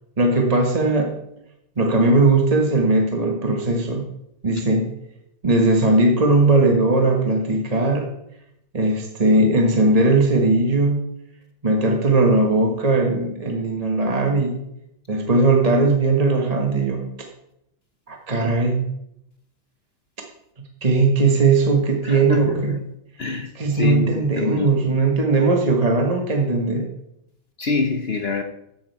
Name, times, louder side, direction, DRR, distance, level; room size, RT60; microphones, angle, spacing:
voice 1, 0.2-1.2 1.8-4.0 4.4-4.9 5.4-8.1 8.7-11.0 11.6-14.6 15.1-17.1 18.1-18.8 20.8-22.8 23.5-26.9, right 2 dB, 25° right, 1 dB, 1.0 m, -19 dB
voice 2, 22.0-22.8 23.2-24.8 27.6-28.4, left 4 dB, 55° left, 5 dB, 0.7 m, -25 dB
13.5 x 7.4 x 4.6 m, 0.80 s
omnidirectional pair, 2.2 m